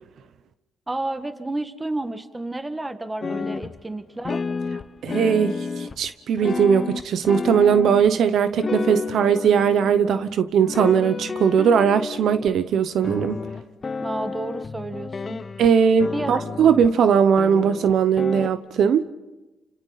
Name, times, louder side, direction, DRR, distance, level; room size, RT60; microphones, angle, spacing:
voice 1, 0.9-4.4 14.0-15.4 16.1-16.4, right 2 dB, 15° right, 9 dB, 1.6 m, -31 dB
sound 1, 3.2-3.8 4.3-6.1 6.4-8.1 8.6-10.3 10.6-12.5 13.0-15.7 16.0-16.9 17.4-18.5, left 4 dB, 35° left, 1.0 m, -30 dB
voice 2, 5.0-13.4 15.6-19.0, right 7 dB, 70° right, 11 dB, 0.9 m, -19 dB
29.0 x 27.0 x 4.1 m, 1.1 s
cardioid pair, 90°, 0 cm